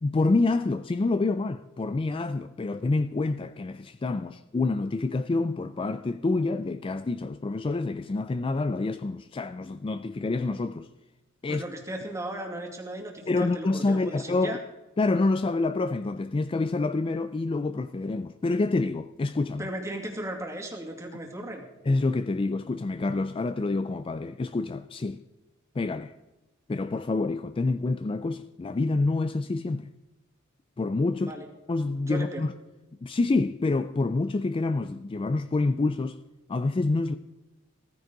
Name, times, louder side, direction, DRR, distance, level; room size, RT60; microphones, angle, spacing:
voice 1, 0.0-10.9 11.4-11.6 13.3-14.6 15.0-19.7 21.9-25.2 25.8-26.1 26.7-29.9 30.8-31.3 31.7-32.5 33.0-36.2 36.5-37.2, left 3 dB, 25° left, 0.3 m, -27 dB
voice 2, 11.5-14.6 19.6-21.7 31.2-31.5 32.1-32.4, right 1 dB, 15° right, 2.2 m, -36 dB
15.5 x 14.5 x 3.9 m
head